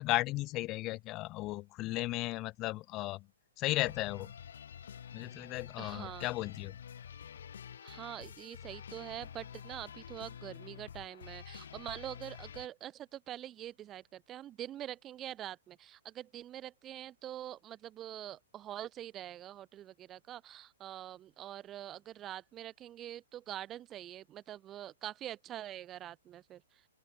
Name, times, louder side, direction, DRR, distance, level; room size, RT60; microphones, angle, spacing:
voice 1, 0.0-3.3 3.6-4.3 5.1-6.8, left 19 dB, 25° left, 0.5 m, -35 dB
sound 1, 3.8-12.7, left 8 dB, 55° left, 4.4 m, -49 dB
voice 2, 5.8-6.3 7.8-26.9, right 12 dB, 20° right, 1.8 m, -45 dB
open air
figure-of-eight pair, 115°, 0 cm